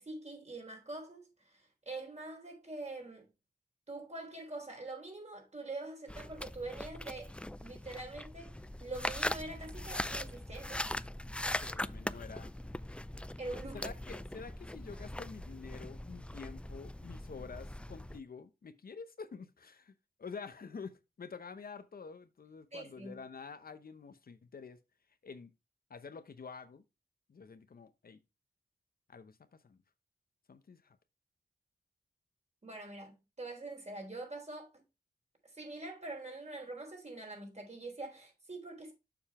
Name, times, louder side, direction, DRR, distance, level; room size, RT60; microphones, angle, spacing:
voice 1, 0.0-3.3 3.9-7.3 7.6-8.5 8.8-10.9 13.4-13.9 22.7-23.1 32.6-34.7 35.5-38.9, right 2 dB, 40° right, 3.7 m, -44 dB
sound 1, 6.1-18.2, left 1 dB, 5° left, 0.3 m, -41 dB
voice 2, 11.6-12.5 13.7-19.9 20.2-24.8 25.2-25.5 25.9-26.8 27.3-28.2 29.1-29.8 30.5-31.0, left 5 dB, 65° left, 0.8 m, -48 dB
7.0 x 5.4 x 4.2 m
wide cardioid pair, 70°, 17 cm